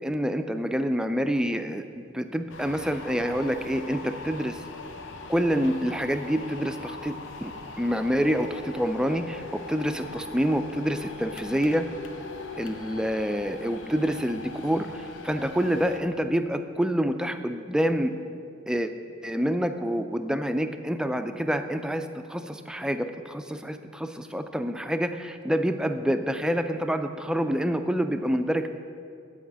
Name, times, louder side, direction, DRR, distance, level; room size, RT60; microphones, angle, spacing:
voice 1, 0.0-4.6 5.3-7.5 7.8-11.9 12.6-18.1 18.7-18.9 19.2-28.7, equal, 5° right, 8 dB, 0.3 m, -27 dB
sound 1, 2.5-16.0, left 3 dB, 90° left, 0.8 m, -41 dB
10.5 x 4.9 x 7.2 m, 2.4 s
head